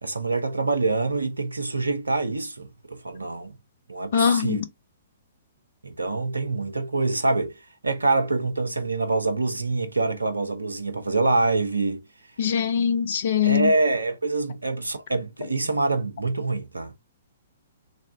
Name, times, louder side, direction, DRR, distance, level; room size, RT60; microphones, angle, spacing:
voice 1, 0.0-3.6 3.9-4.6 5.8-7.5 7.8-12.0 13.4-17.0, right 3 dB, 80° right, 0.7 m, -25 dB
voice 2, 4.1-4.6 12.4-13.7, left 8 dB, 50° left, 0.6 m, -22 dB
3.3 x 2.6 x 3.4 m
figure-of-eight pair, 120°, 0 cm